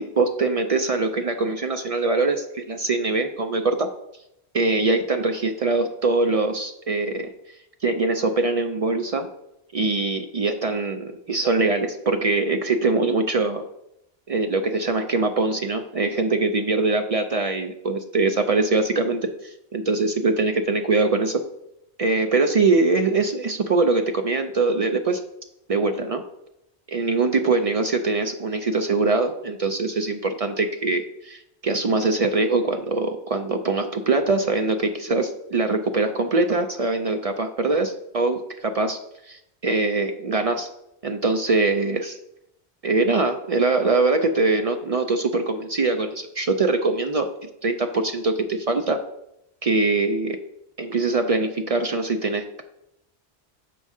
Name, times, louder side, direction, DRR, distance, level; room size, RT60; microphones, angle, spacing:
voice 1, 0.0-3.9 4.5-7.3 7.8-9.3 9.7-13.6 14.3-21.4 22.0-25.2 25.7-26.2 26.9-39.0 39.3-40.7 41.0-42.2 42.8-49.0 49.6-50.4 50.8-52.6, right 3 dB, 55° right, 6 dB, 0.4 m, -23 dB
6.9 x 5.3 x 3.6 m, 0.82 s
omnidirectional pair, 1.1 m